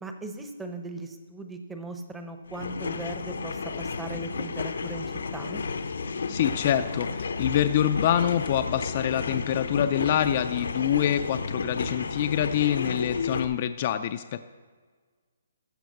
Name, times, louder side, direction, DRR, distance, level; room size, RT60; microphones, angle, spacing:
voice 1, 0.0-5.1 5.3-5.6, right 2 dB, 5° right, 5 dB, 0.8 m, -38 dB
sound 1, 2.5-13.4, left 4 dB, 80° left, 0.9 m, -32 dB
voice 2, 6.3-14.5, left 10 dB, 35° left, 9 dB, 0.4 m, -26 dB
14.0 x 4.8 x 7.2 m, 1.5 s
hypercardioid pair, 165°, 0 cm